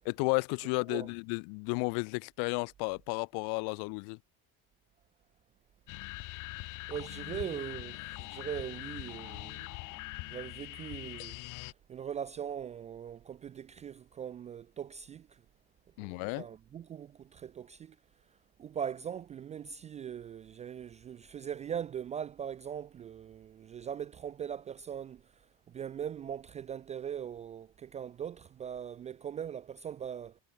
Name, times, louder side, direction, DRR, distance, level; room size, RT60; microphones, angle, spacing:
voice 1, 0.0-4.2 16.0-16.5, left 37 dB, 70° left, 3.2 m, -33 dB
sound 1, 5.9-11.7, left 23 dB, 50° left, 0.9 m, -42 dB
voice 2, 6.9-10.0 10.3-11.4 11.9-15.3 16.0-18.0 18.6-25.2 25.7-30.4, right 8 dB, 20° right, 0.3 m, -40 dB
cardioid pair, 175°, 39 cm